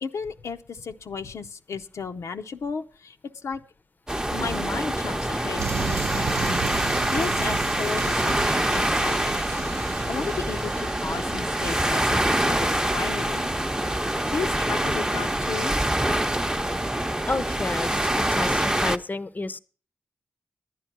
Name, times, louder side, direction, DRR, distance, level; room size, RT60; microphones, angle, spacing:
voice 1, 0.0-3.2 3.4-3.6 4.3-9.4 9.8-13.5 14.3-15.7, left 5 dB, 75° left, 6 dB, 0.6 m, -34 dB
sound 1, 4.1-19.0, right 1 dB, 15° right, 0.7 m, -25 dB
sound 2, 5.6-11.8, right 6 dB, 70° right, 0.5 m, -34 dB
voice 2, 17.3-19.6, left 3 dB, 35° left, 15 dB, 0.6 m, -31 dB
11.0 x 9.4 x 5.9 m, 0.38 s
cardioid pair, 45°, 5 cm